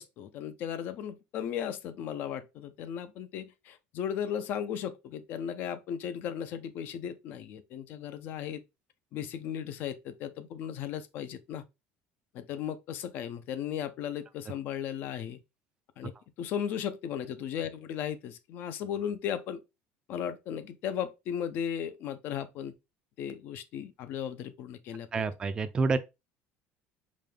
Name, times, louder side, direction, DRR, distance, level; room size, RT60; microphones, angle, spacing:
voice 1, 0.0-8.6 9.1-11.6 12.3-15.4 16.0-16.1 16.4-19.6 20.1-22.7 23.2-25.2, left 9 dB, 50° left, 0.5 m, -36 dB
voice 2, 25.1-26.0, right 4 dB, 20° right, 0.4 m, -28 dB
5.0 x 2.2 x 3.4 m
cardioid pair, 170°, 4 cm